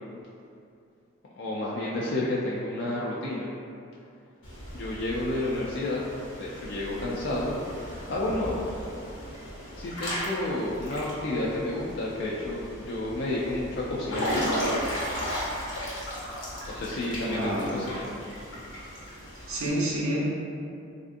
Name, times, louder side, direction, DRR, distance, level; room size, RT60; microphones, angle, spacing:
voice 1, 1.3-3.6 4.7-6.0 6.4-8.6 9.7-14.4 16.7-18.1, left 1 dB, 55° left, -6 dB, 0.3 m, -31 dB
Water / Splash splatter / Drip, 4.4-19.7, equal, 70° left, 0.8 m, -35 dB
voice 2, 17.3-17.7 19.5-20.2, right 1 dB, 90° right, -5 dB, 0.7 m, -28 dB
3.3 x 2.5 x 2.5 m, 2.5 s
head